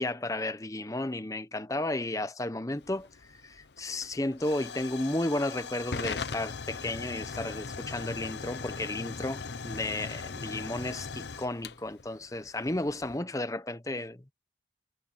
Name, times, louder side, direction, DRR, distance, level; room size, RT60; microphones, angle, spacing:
voice 1, 0.0-3.1 3.4-14.3, left 1 dB, 15° left, 0.8 m, -33 dB
Hiss / Fire / Tick, 2.8-13.2, left 5 dB, 65° left, 0.8 m, -40 dB
head